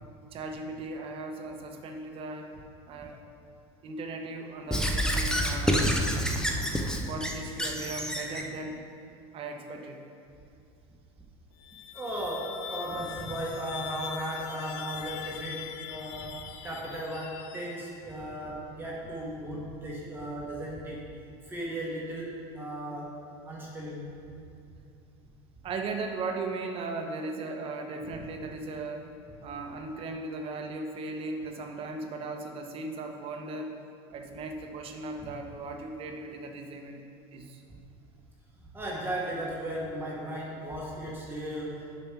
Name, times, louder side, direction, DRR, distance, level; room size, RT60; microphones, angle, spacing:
voice 1, 0.3-2.5 2.9-3.2 3.8-5.9 7.1-8.8 9.3-10.0 25.6-29.1 29.4-33.7 34.1-37.0 37.3-37.6, right 3 dB, 40° right, 4 dB, 0.9 m, -37 dB
Squeak / Writing, 4.7-8.5, equal, 5° left, 0.6 m, -28 dB
sound 1, 11.5-18.2, left 10 dB, 80° left, 0.5 m, -42 dB
voice 2, 11.9-21.0 21.5-23.2 23.5-24.2 28.1-28.2 38.7-42.0, right 1 dB, 15° right, -5 dB, 1.2 m, -36 dB
7.0 x 5.2 x 5.9 m, 2.6 s
supercardioid pair, 125°, 14 cm